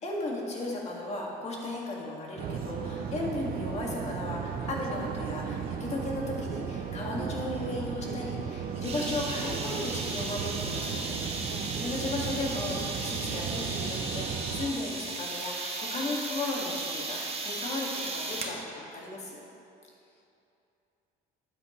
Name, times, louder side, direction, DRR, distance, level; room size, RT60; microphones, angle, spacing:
voice 1, 0.0-11.0 11.3-19.4, left 2 dB, 40° left, -2 dB, 2.1 m, -35 dB
sound 1, 2.4-14.7, right 6 dB, 60° right, 0.8 m, -35 dB
sound 2, 8.8-18.6, right 3 dB, 35° right, 1.2 m, -36 dB
voice 2, 11.4-11.9 20.1-20.2, left 3 dB, 10° left, 2 dB, 0.4 m, -50 dB
12.5 x 8.5 x 3.2 m, 2.7 s
cardioid pair, 110°, 17 cm